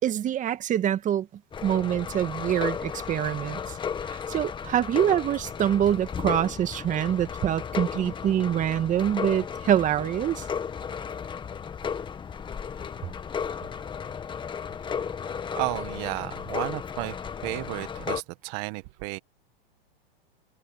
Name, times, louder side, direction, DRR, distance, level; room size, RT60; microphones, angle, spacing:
voice 1, 0.0-1.3 1.6-3.8 4.1-10.5, right 10 dB, 25° right, 1.9 m, -25 dB
sound 1, 1.5-18.2, left 7 dB, 15° left, 1.6 m, -34 dB
voice 2, 15.5-17.2 17.4-19.2, right 25 dB, 45° right, 1.5 m, -32 dB
hypercardioid pair, 130°, 29 cm